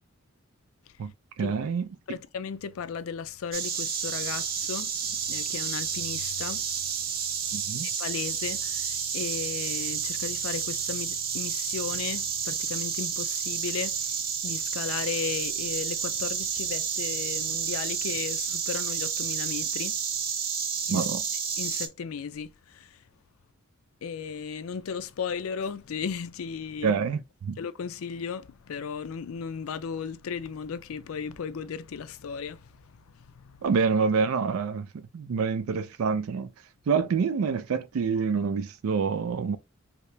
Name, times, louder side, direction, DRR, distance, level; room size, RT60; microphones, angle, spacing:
voice 1, 1.4-2.2 7.5-7.9 20.9-21.2 26.8-27.6 33.6-36.5 36.9-39.6, right 5 dB, 90° right, 0.4 m, -27 dB
voice 2, 2.1-6.7 7.1-7.2 7.8-20.0 20.9-21.1 21.6-23.0 24.0-27.0 27.6-33.6, left 6 dB, 90° left, 0.4 m, -35 dB
Insect, 3.5-21.9, right 7 dB, 45° right, 0.6 m, -30 dB
2.8 x 2.8 x 3.2 m
head